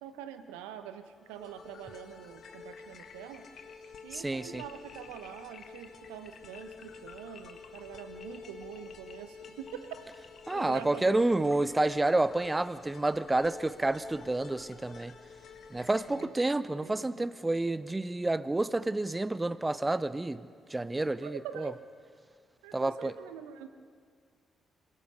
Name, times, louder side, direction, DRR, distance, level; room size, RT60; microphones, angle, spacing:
voice 1, 0.0-3.4 4.0-10.1 10.5-11.5 16.1-16.3 16.8-17.3 21.2-21.8 22.6-23.7, right 10 dB, 75° right, 1.0 m, -44 dB
sound 1, 1.2-16.2, left 5 dB, 55° left, 1.6 m, -50 dB
voice 2, 4.1-4.6 10.5-15.2 15.7-21.7 22.7-23.2, right 2 dB, 20° right, 0.7 m, -29 dB
26.5 x 16.5 x 6.3 m
figure-of-eight pair, 40°, 0 cm